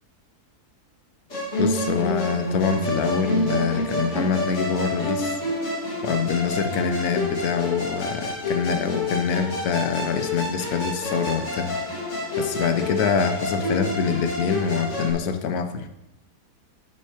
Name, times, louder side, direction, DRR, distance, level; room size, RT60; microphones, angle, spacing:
Musical instrument, 1.3-15.1, left 1 dB, 50° left, 2.2 m, -28 dB
voice 1, 1.6-5.4 6.0-12.1 12.4-15.9, left 6 dB, 75° left, 8 dB, 1.2 m, -25 dB
9.5 x 9.1 x 2.8 m, 0.88 s
omnidirectional pair, 1.7 m